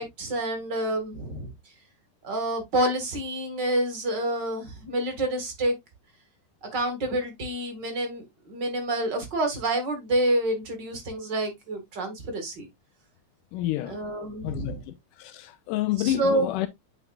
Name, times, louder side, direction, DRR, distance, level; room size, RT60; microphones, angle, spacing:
voice 1, 0.0-1.5 2.2-5.8 6.7-12.7 13.9-14.8 16.0-16.5, right 1 dB, 35° right, 2.2 m, -28 dB
voice 2, 13.5-14.1 14.4-16.7, left 14 dB, 85° left, 2.2 m, -29 dB
8.0 x 5.8 x 2.4 m
omnidirectional pair, 3.8 m